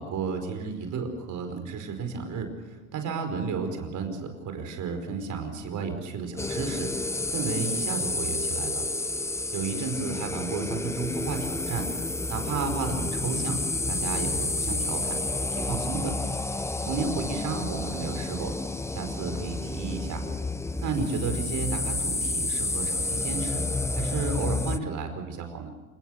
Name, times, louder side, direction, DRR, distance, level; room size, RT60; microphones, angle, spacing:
voice 1, 0.0-8.9 9.5-11.8 12.3-13.6 13.9-15.2 15.5-16.2 16.8-18.5 18.9-20.2 20.8-23.6 23.9-25.7, right 5 dB, 40° right, 6 dB, 5.0 m, -32 dB
sound 1, 6.4-24.8, left 2 dB, 5° left, 0.8 m, -30 dB
28.5 x 18.0 x 6.7 m, 1.2 s
hypercardioid pair, 90°, 43 cm